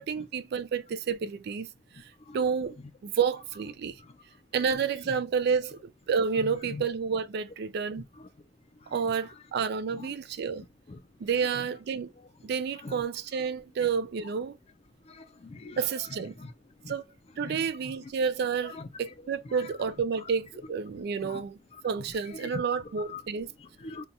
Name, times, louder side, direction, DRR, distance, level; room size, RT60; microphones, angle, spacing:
voice 1, 0.0-1.7 1.9-2.8 3.0-4.0 4.5-8.0 8.9-10.6 11.2-12.1 12.4-14.6 15.8-16.3 16.9-17.0 17.4-21.6 21.8-23.5, right 6 dB, 60° right, 0.3 m, -30 dB
voice 2, 6.4-6.8 8.2-8.3 8.8-9.0 9.9-10.2 10.9-11.0 11.5-11.7 12.8-13.0 15.0-15.8 16.4-16.5 16.8-16.9 17.4-18.1 18.6-18.9 19.4-19.7 21.2-21.4 21.7-21.8 22.3-22.6 23.0-23.2 23.6-24.1, left 3 dB, 35° left, 0.4 m, -43 dB
2.8 x 2.3 x 3.8 m
head